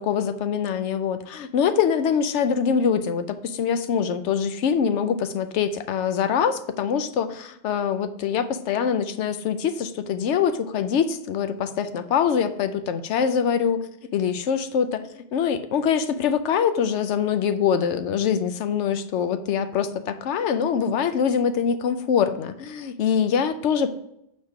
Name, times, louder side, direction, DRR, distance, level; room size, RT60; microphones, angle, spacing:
voice 1, 0.0-13.9 14.1-24.0, left 7 dB, 90° left, 9 dB, 0.9 m, -24 dB
7.1 x 4.3 x 4.7 m, 0.79 s
omnidirectional pair, 1.2 m